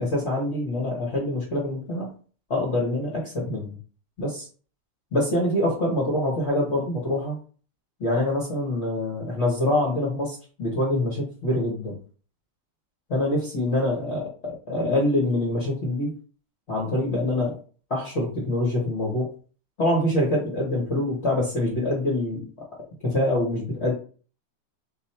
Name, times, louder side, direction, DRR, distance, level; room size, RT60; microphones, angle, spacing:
voice 1, 0.0-2.1 2.5-3.8 4.2-4.5 5.1-7.4 8.0-12.0 13.1-16.1 16.7-17.6 17.9-19.3 19.8-22.5 23.0-23.9, left 1 dB, 90° left, -4 dB, 0.5 m, -25 dB
5.1 x 2.2 x 4.3 m, 0.40 s
omnidirectional pair, 3.6 m